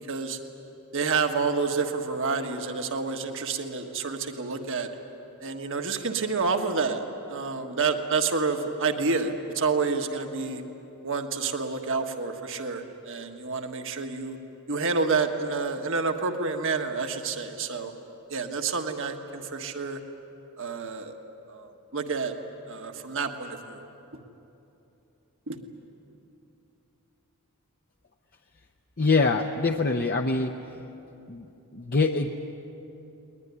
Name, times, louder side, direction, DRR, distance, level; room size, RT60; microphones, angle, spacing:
voice 1, 0.1-0.4 0.9-4.9 5.4-7.0 7.3-10.6 11.0-14.4 14.7-17.9 18.3-20.0 20.6-21.2 21.5-22.3 22.7-23.9 25.5-25.6, right 4 dB, 60° right, 5 dB, 1.5 m, -29 dB
voice 2, 29.0-30.5 31.3-31.5 31.7-32.3, left 3 dB, 45° left, 3 dB, 0.8 m, -24 dB
21.0 x 20.5 x 9.6 m, 3.0 s
head